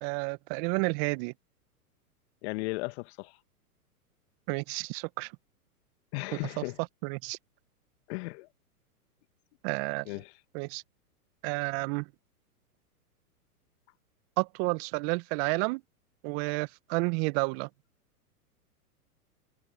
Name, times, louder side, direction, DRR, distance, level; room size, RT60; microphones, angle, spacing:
voice 1, 0.0-1.3 4.5-5.3 7.0-7.4 9.6-10.1 10.5-10.8 11.4-12.1 14.4-15.8 16.2-17.7, right 31 dB, 40° right, 1.7 m, -30 dB
voice 2, 2.4-3.4 6.1-6.8 8.1-8.5 10.1-10.3, left 25 dB, 45° left, 2.0 m, -36 dB
hypercardioid pair, 110°, 46 cm